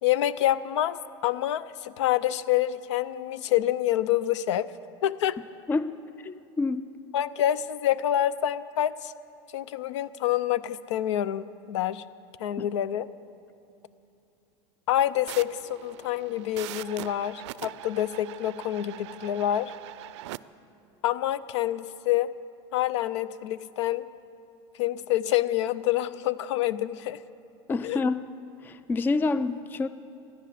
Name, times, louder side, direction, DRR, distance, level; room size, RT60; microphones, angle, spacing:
voice 1, 0.0-4.7 5.0-5.4 7.1-9.1 9.5-12.0 12.4-13.1 14.9-19.7 21.0-22.3 22.7-24.1 24.7-27.2 27.8-28.0, left 12 dB, 85° left, 17 dB, 0.6 m, -27 dB
voice 2, 5.7-6.8 12.6-12.7 27.7-28.3 28.6-29.9, left 3 dB, 15° left, 14 dB, 0.3 m, -28 dB
sound 1, 15.3-20.4, right 16 dB, 80° right, 0.4 m, -42 dB
15.0 x 10.0 x 7.6 m, 2.7 s
supercardioid pair, 140°, 15 cm